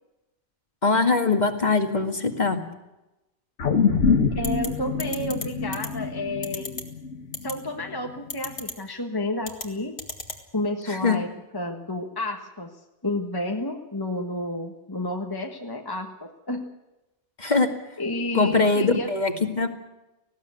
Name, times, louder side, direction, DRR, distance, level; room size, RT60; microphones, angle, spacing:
voice 1, 0.8-2.6 10.9-11.2 17.4-17.7 18.3-19.7, left 3 dB, 35° left, 6 dB, 2.1 m, -22 dB
sound 1, 3.6-8.1 8.5-8.6, left 5 dB, 80° left, 1.8 m, -25 dB
voice 2, 4.3-6.7 7.4-9.9 10.5-12.7 13.0-16.7 18.0-19.1, left 1 dB, 20° left, 3 dB, 1.5 m, -30 dB
sound 2, 4.4-4.7 5.0-5.4 5.7-5.9 6.4-6.8 7.3-7.5 8.3-8.7 9.4-9.7 10.0-10.4, left 3 dB, 60° left, 2.6 m, -32 dB
19.5 x 16.0 x 9.5 m, 0.99 s
omnidirectional pair, 1.2 m